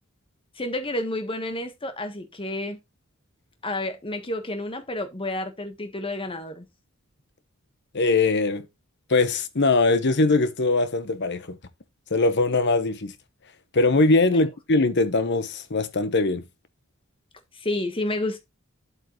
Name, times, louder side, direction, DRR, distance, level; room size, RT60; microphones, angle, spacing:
voice 1, 0.6-2.8 3.6-6.7 17.5-18.4, left 1 dB, 25° left, 1.4 m, -30 dB
voice 2, 7.9-8.7 9.1-11.6 12.1-13.1 13.7-16.4, left 3 dB, 55° left, 1.1 m, -21 dB
9.2 x 8.1 x 3.1 m
head